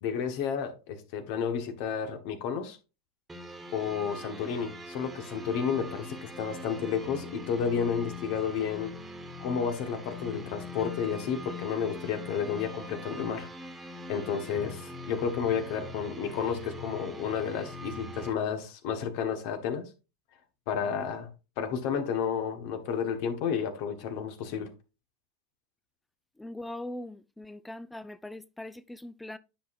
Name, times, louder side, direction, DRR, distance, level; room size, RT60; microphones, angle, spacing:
voice 1, 0.0-2.8 3.7-8.9 9.4-13.5 14.1-19.9 20.7-21.3 21.6-24.7, left 7 dB, 60° left, 1.3 m, -31 dB
sound 1, 3.3-18.3, left 1 dB, 15° right, 1.4 m, -42 dB
voice 2, 26.4-29.4, left 1 dB, 5° left, 0.5 m, -41 dB
9.3 x 5.6 x 2.6 m
hypercardioid pair, 95°, 0 cm